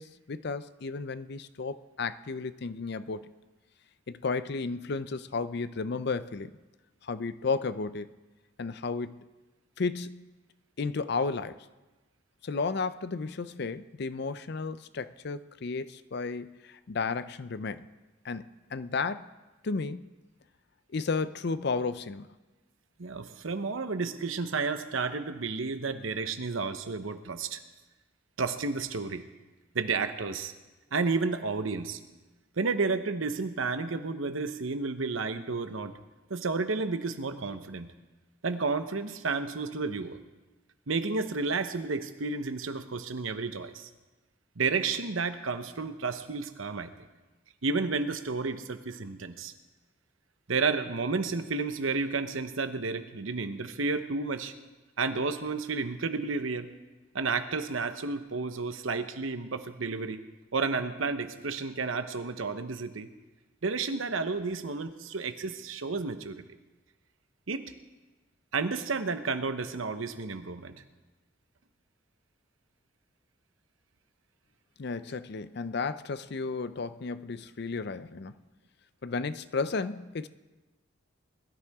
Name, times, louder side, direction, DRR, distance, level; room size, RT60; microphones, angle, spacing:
voice 1, 0.0-3.3 4.1-6.6 7.0-8.1 8.6-9.3 9.8-10.3 10.8-11.7 12.4-17.9 18.2-19.3 19.6-20.1 20.9-22.3 74.8-78.3 79.0-80.3, left 4 dB, 55° left, 13 dB, 0.5 m, -33 dB
voice 2, 23.0-27.6 28.4-29.2 29.7-30.5 30.9-32.0 32.6-35.9 36.3-37.9 38.4-40.2 40.9-43.9 44.6-46.9 47.6-49.5 50.5-54.5 55.0-56.7 57.1-60.2 60.5-63.1 63.6-66.4 67.5-67.7 68.5-70.8, right 4 dB, 90° right, 9 dB, 0.9 m, -31 dB
21.0 x 13.0 x 3.6 m, 1.2 s
head